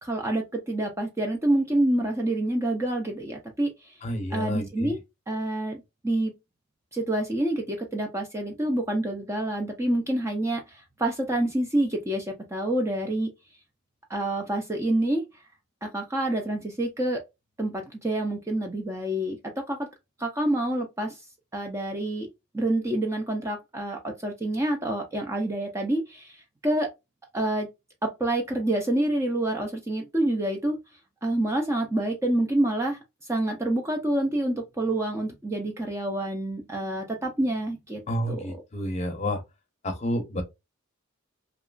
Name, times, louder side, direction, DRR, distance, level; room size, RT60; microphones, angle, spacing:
voice 1, 0.0-3.9 4.3-5.0 5.3-6.3 6.9-13.3 14.1-15.3 15.8-17.2 17.6-19.9 20.2-21.2 21.5-26.9 27.3-27.7 28.0-30.8 31.2-33.0 33.3-38.0 38.3-38.6, right 1 dB, 15° right, 0.4 m, -27 dB
voice 2, 4.0-4.9 38.1-39.4 39.8-40.4, left 1 dB, 30° left, 0.6 m, -30 dB
2.8 x 2.3 x 2.3 m
head